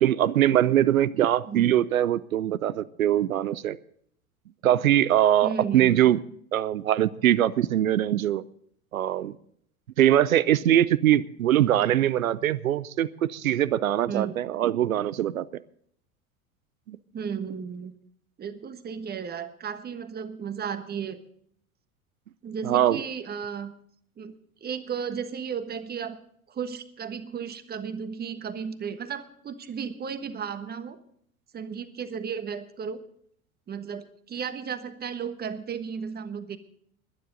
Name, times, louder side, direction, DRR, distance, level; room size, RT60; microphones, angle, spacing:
voice 1, 0.0-3.8 4.6-6.2 6.5-8.4 8.9-9.4 10.0-15.5 16.9-17.0 22.6-23.0, right 12 dB, 70° right, 19 dB, 0.8 m, -22 dB
voice 2, 5.4-6.0 14.1-14.3 17.1-17.9 18.4-21.2 22.4-23.7 24.2-24.3 24.6-26.2 26.5-31.0 31.5-33.0 33.7-36.6, right 7 dB, 20° right, 11 dB, 1.3 m, -34 dB
21.5 x 10.0 x 4.0 m, 0.65 s
figure-of-eight pair, 80°, 44 cm